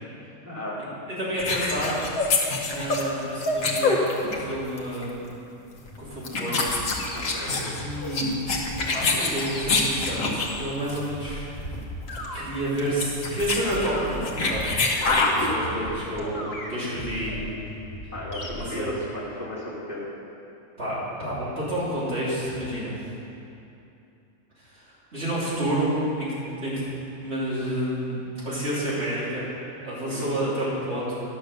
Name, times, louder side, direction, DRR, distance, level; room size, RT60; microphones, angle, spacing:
voice 1, 0.4-0.8 7.1-7.7 18.1-20.0 30.0-30.3, left 1 dB, 10° right, -9 dB, 2.3 m, -34 dB
voice 2, 1.2-2.0 2.5-4.0 4.3-5.3 6.0-6.6 7.7-8.5 8.9-11.4 12.3-14.8 15.4-17.5 18.0-18.1 18.6-18.9 20.8-22.9 24.7-26.3 26.6-26.8 27.2-28.2 28.4-29.5 29.8-31.2, right 1 dB, 50° right, -9 dB, 3.4 m, -29 dB
sound 1, 1.4-4.5 4.8-5.0 5.8-5.9 6.2-10.6 10.9-11.1 11.3-11.4 11.6-11.8 12.1-12.2 12.7-15.5, left 3 dB, 80° left, 1.5 m, -25 dB
sound 2, 5.8-18.7, left 1 dB, 45° left, 1.6 m, -37 dB
11.0 x 6.6 x 6.5 m, 2.8 s
omnidirectional pair, 1.5 m